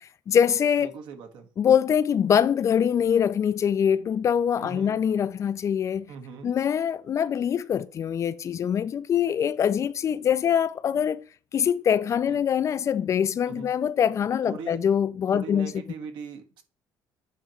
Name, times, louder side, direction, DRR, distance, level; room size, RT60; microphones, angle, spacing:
voice 1, 0.0-0.9 1.6-6.1 6.4-11.2 11.5-15.7, left 8 dB, 40° left, 0.4 m, -24 dB
voice 2, 0.8-1.5 4.6-5.0 6.1-6.5 12.3-12.4 13.5-13.7 14.5-14.8 15.3-16.6, right 5 dB, 70° right, 1.4 m, -40 dB
8.5 x 3.0 x 5.0 m
cardioid pair, 125°, 8 cm